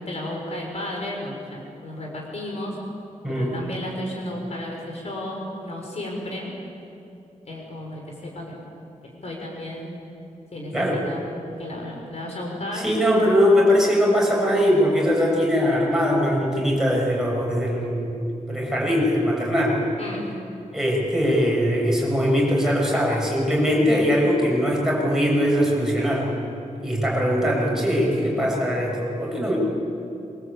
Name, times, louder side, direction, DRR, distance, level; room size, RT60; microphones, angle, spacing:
voice 1, 0.0-2.8 3.3-6.5 7.4-8.6 9.2-10.0 10.5-10.7 11.0-11.2 11.6-12.9 20.0-20.3, left 1 dB, 55° left, 0 dB, 5.8 m, -33 dB
voice 2, 3.2-3.6 10.7-11.0 12.7-19.7 20.7-26.3 26.8-29.6, equal, 5° right, -4 dB, 7.9 m, -21 dB
27.0 x 24.0 x 8.6 m, 2.7 s
wide cardioid pair, 130°, 14 cm